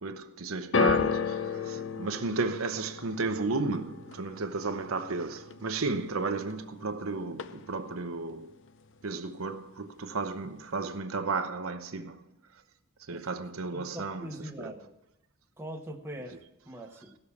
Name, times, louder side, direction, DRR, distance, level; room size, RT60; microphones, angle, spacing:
voice 1, 0.0-8.5 9.0-12.6 13.0-14.8 17.0-17.1, right 3 dB, 75° right, 0.8 m, -34 dB
sound 1, 0.7-7.0 7.3-7.9 8.7-8.8, left 5 dB, 60° left, 0.6 m, -33 dB
voice 2, 13.7-14.9 15.6-17.2, right 1 dB, 10° right, 1.0 m, -43 dB
16.5 x 6.8 x 7.0 m
head